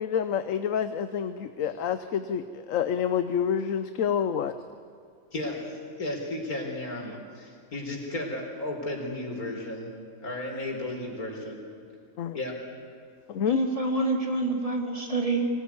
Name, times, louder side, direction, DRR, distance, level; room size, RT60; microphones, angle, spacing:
voice 1, 0.0-4.6 12.2-12.4 13.3-13.6, left 8 dB, 65° left, 11 dB, 1.2 m, -28 dB
voice 2, 5.3-7.1 7.3-9.9 10.2-11.6 12.3-12.6, left 1 dB, 85° left, 1 dB, 4.7 m, -34 dB
voice 3, 13.5-15.5, right 2 dB, 25° right, 2 dB, 2.6 m, -27 dB
24.5 x 19.5 x 9.6 m, 2.3 s
omnidirectional pair, 1.5 m